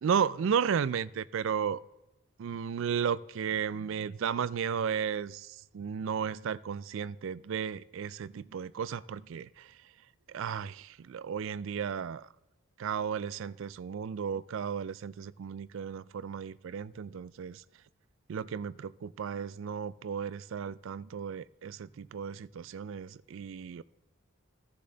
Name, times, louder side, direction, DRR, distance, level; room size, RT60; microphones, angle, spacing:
voice 1, 0.0-1.8 2.4-9.7 10.3-12.3 12.8-17.6 18.3-23.8, right 7 dB, 60° right, 0.3 m, -34 dB
15.5 x 6.7 x 3.8 m
head